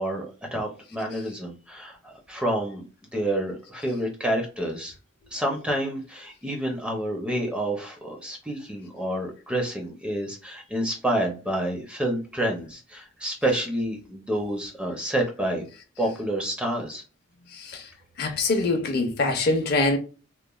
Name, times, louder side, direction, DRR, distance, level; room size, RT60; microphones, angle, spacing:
voice 1, 0.0-2.8 3.1-4.9 5.3-15.6 16.0-17.0, right 1 dB, 5° right, 0.4 m, -28 dB
voice 2, 18.2-20.0, left 2 dB, 45° left, 0.5 m, -24 dB
3.0 x 2.1 x 2.2 m
head